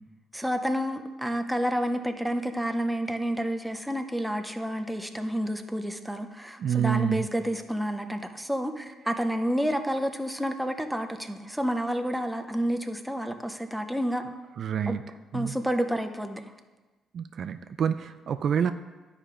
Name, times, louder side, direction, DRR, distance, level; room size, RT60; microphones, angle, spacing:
voice 1, 0.3-14.2 14.9-15.0 15.3-16.4, equal, 5° right, 6 dB, 0.7 m, -29 dB
voice 2, 6.6-7.3 14.6-15.0 15.3-15.6 17.1-18.7, right 8 dB, 60° right, 10 dB, 0.3 m, -27 dB
11.0 x 4.9 x 3.4 m, 1.2 s
cardioid pair, 90°, 0 cm